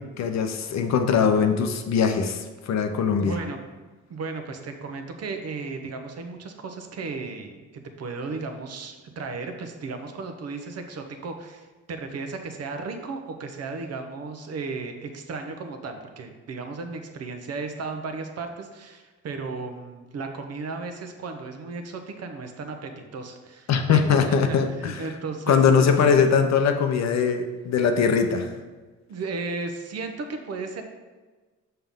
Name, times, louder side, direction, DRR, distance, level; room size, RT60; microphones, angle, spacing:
voice 1, 0.2-3.4 23.7-25.0 25.5-28.5, left 6 dB, 60° left, 6 dB, 0.8 m, -21 dB
voice 2, 3.1-3.6 4.1-26.1 29.1-30.8, right 4 dB, 55° right, 5 dB, 0.9 m, -35 dB
5.8 x 5.6 x 3.6 m, 1.3 s
cardioid pair, 90°, 30 cm